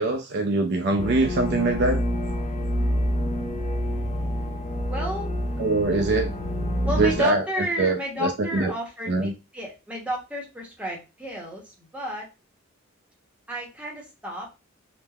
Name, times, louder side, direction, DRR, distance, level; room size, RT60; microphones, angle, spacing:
voice 1, 0.0-2.0 5.6-6.3 7.0-7.4 7.8-8.7 9.1-9.3, right 2 dB, 50° right, 4 dB, 0.4 m, -23 dB
sound 1, 1.0-7.3, equal, 35° left, 0.4 m, -27 dB
voice 2, 4.9-5.3 6.8-12.3 13.5-14.5, equal, 5° right, -1 dB, 0.8 m, -32 dB
3.3 x 2.1 x 2.2 m, 0.27 s
head